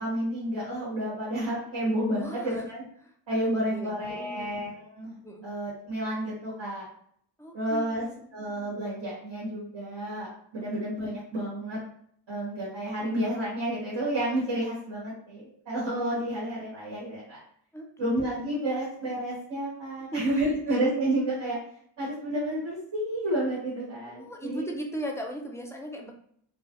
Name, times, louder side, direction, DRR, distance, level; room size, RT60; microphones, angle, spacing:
voice 1, 0.0-2.8 3.3-6.9 7.5-8.0 8.3-10.3 10.5-11.8 12.3-17.4 18.0-21.6 22.0-24.7, right 1 dB, 70° right, -8 dB, 1.2 m, -30 dB
voice 2, 2.1-2.6 3.3-4.5 5.2-5.5 7.4-8.3 10.6-10.9 17.7-18.3 20.1-20.2 24.1-26.1, equal, 5° left, 1 dB, 0.4 m, -38 dB
2.3 x 2.1 x 2.8 m, 0.64 s
wide cardioid pair, 60°, 47 cm